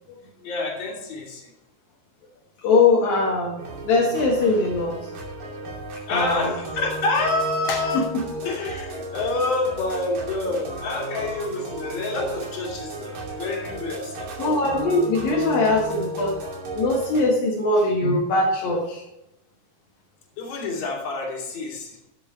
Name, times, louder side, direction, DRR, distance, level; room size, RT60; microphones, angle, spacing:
voice 1, 0.4-1.5 6.1-8.0 8.4-14.3 20.4-22.0, left 3 dB, 50° left, -2 dB, 4.0 m, -27 dB
voice 2, 2.6-3.6 3.8-4.9 6.1-6.5 14.4-16.4 16.7-19.0, left 3 dB, 70° left, -4 dB, 3.6 m, -21 dB
sound 1, 3.6-17.2, right 2 dB, 70° right, 4.4 m, -34 dB
15.0 x 7.0 x 4.4 m, 0.90 s
omnidirectional pair, 4.4 m